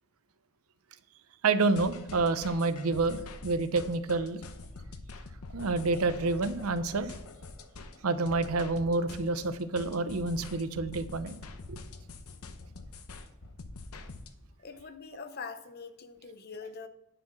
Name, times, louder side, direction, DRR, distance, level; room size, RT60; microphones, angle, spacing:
voice 1, 1.4-4.4 5.5-7.1 8.0-11.3 11.7-11.8, right 3 dB, 80° right, 0.7 m, -28 dB
sound 1, 1.6-14.3, left 3 dB, 85° left, 0.8 m, -45 dB
voice 2, 14.6-16.9, left 5 dB, 45° left, 0.7 m, -43 dB
10.0 x 4.6 x 6.1 m
head